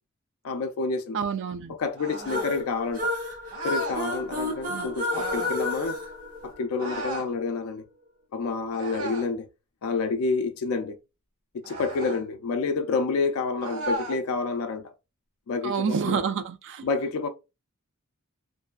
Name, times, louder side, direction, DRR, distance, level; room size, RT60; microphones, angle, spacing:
voice 1, 0.4-1.2 1.7-3.2 3.6-6.0 6.4-7.9 8.3-9.5 9.8-11.0 11.5-14.9 15.5-16.2 16.8-17.3, left 4 dB, 70° left, 0.4 m, -29 dB
voice 2, 1.1-1.7 4.7-4.9 15.6-16.8, right 6 dB, 55° right, 0.4 m, -28 dB
sound 1, 2.0-2.5 3.5-4.0 5.1-5.6 6.8-7.3 8.7-9.4 11.6-12.2 13.6-14.2, right 1 dB, 80° right, 1.1 m, -34 dB
sound 2, 2.3-7.0, left 2 dB, 40° right, 0.8 m, -31 dB
2.6 x 2.3 x 2.2 m
head